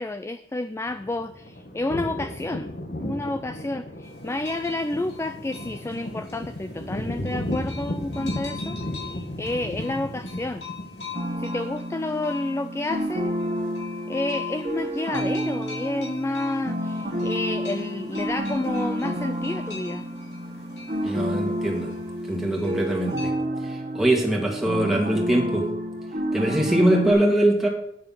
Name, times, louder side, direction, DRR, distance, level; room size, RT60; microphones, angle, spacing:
voice 1, 0.0-2.7 3.0-10.6 11.4-13.3 14.1-20.1, left 2 dB, 15° left, 10 dB, 0.3 m, -30 dB
sound 1, 0.9-11.3, left 1 dB, 55° left, 1.1 m, -34 dB
sound 2, 4.0-23.3, left 6 dB, 85° left, 4.0 m, -43 dB
sound 3, 11.1-27.1, equal, 40° right, 1.3 m, -30 dB
voice 2, 21.0-21.9 22.3-23.3 23.6-25.7 26.3-27.7, right 1 dB, ahead, -1 dB, 2.0 m, -22 dB
9.1 x 6.7 x 5.5 m, 0.74 s
head